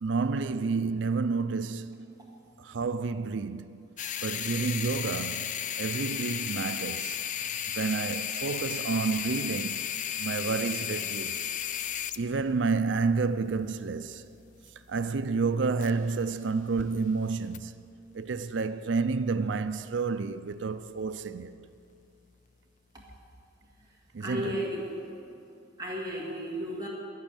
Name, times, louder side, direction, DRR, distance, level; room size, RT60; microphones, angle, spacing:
voice 1, 0.0-2.0 2.6-3.9 4.2-7.2 7.7-9.9 10.2-11.5 12.2-14.2 14.9-17.7 18.1-21.5 24.1-24.7, right 4 dB, 70° right, 0.5 m, -30 dB
sound 1, 4.0-16.3 16.6-16.8 17.5-17.6, left 9 dB, 40° left, 0.4 m, -35 dB
voice 2, 24.2-25.3 25.8-26.9, equal, 20° right, 1.9 m, -34 dB
11.5 x 11.5 x 8.9 m
head